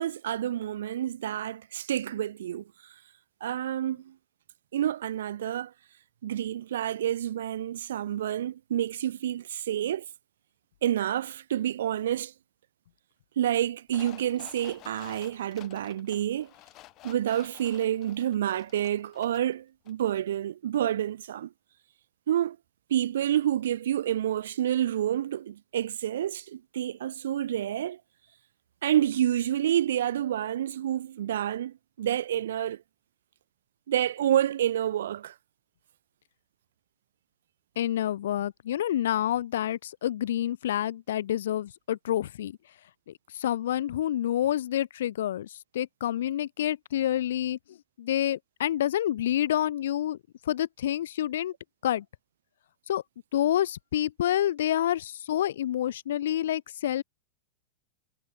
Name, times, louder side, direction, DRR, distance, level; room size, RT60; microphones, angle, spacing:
voice 1, 0.0-2.9 3.4-4.1 4.7-5.7 6.2-10.0 10.8-12.3 13.4-16.5 17.0-21.5 22.3-22.6 22.9-28.0 28.8-32.8 33.9-35.3, right 11 dB, 85° right, 2.2 m, -28 dB
sound 1, 13.9-19.5 19.9-20.0, left 18 dB, 30° left, 5.3 m, -51 dB
voice 2, 37.8-42.6 43.1-45.5 45.7-47.6 48.0-50.2 50.5-51.5 51.8-52.0 52.9-53.0 53.3-57.0, left 11 dB, 75° left, 0.9 m, -28 dB
supercardioid pair, 165°, 0 cm